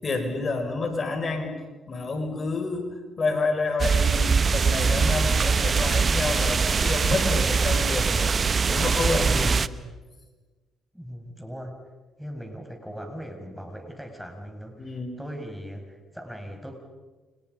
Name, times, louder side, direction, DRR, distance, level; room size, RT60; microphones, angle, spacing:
voice 1, 0.0-1.5 1.9-8.3 8.6-9.6 14.8-15.2, left 3 dB, 40° left, 5 dB, 6.5 m, -29 dB
sound 1, 3.8-9.7, right 5 dB, 45° right, 1.1 m, -22 dB
voice 2, 10.9-11.7 12.2-16.8, equal, ahead, 3 dB, 6.8 m, -39 dB
29.5 x 29.5 x 5.6 m, 1.3 s
hypercardioid pair, 50°, 0 cm